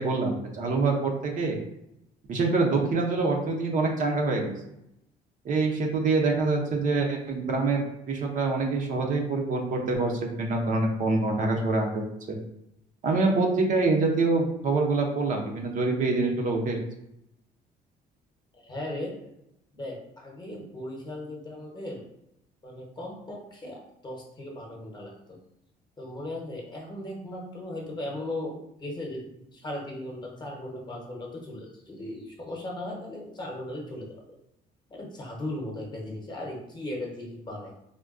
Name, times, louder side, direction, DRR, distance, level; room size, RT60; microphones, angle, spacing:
voice 1, 0.0-1.6 2.3-4.5 5.4-12.4 13.0-16.8, right 3 dB, 50° right, 1 dB, 0.6 m, -25 dB
voice 2, 18.5-19.2 19.7-22.0 22.6-25.4 26.0-34.2 34.9-37.7, left 1 dB, 25° left, -1 dB, 0.9 m, -37 dB
3.6 x 2.2 x 2.4 m, 0.80 s
cardioid pair, 110°, 17 cm